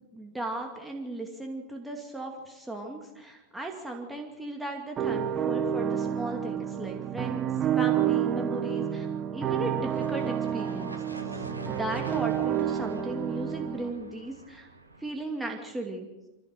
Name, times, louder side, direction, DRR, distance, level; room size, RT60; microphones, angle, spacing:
voice 1, 0.0-7.5 7.8-9.1 9.3-11.0 11.3-14.7 15.0-16.1, right 1 dB, 5° right, 1 dB, 2.5 m, -36 dB
sound 1, 5.0-13.9, right 9 dB, 25° right, 1.4 m, -29 dB
sound 2, 9.3-15.2, right 2 dB, 80° right, 2.0 m, -44 dB
25.5 x 16.0 x 6.7 m, 1.1 s
figure-of-eight pair, 90°, 0 cm